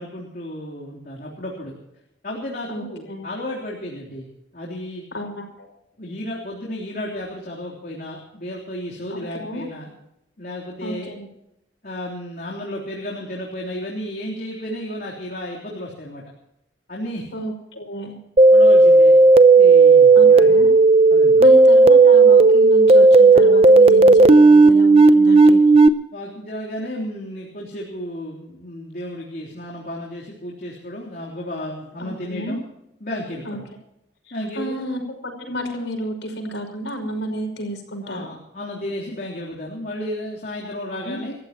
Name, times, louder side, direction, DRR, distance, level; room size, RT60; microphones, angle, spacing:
voice 1, 0.0-1.8 2.2-5.0 6.0-9.9 10.4-11.1 11.8-16.2 16.9-17.3 18.5-19.2 19.6-20.7 21.1-21.4 26.1-32.6 33.0-33.6 34.3-34.8 38.0-41.4, left 1 dB, 50° left, -3 dB, 3.5 m, -33 dB
voice 2, 2.7-3.3 5.1-5.7 9.1-9.7 10.8-11.3 17.3-18.2 20.1-20.7 21.4-25.6 32.0-32.6 33.4-33.6 34.3-38.3 40.9-41.2, equal, 90° left, 4 dB, 5.6 m, -31 dB
sound 1, 18.4-25.9, right 3 dB, 35° right, 0.7 m, -11 dB
28.0 x 14.5 x 3.0 m, 0.82 s
head